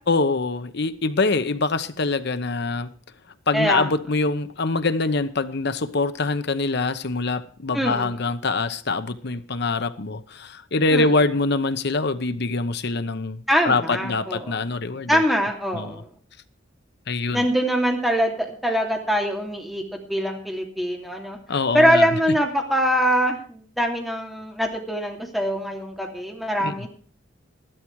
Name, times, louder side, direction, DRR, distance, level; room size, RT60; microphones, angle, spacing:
voice 1, 0.1-2.9 3.5-13.4 13.6-15.1 15.7-15.9 17.1-17.5 21.5-22.1 26.6-26.9, left 3 dB, 60° left, 1.0 m, -24 dB
voice 2, 3.5-3.9 7.7-8.2 10.9-11.2 13.5-14.6 15.1-16.1 17.3-21.4 21.7-26.9, equal, ahead, 2.8 m, -23 dB
13.5 x 12.5 x 4.7 m
head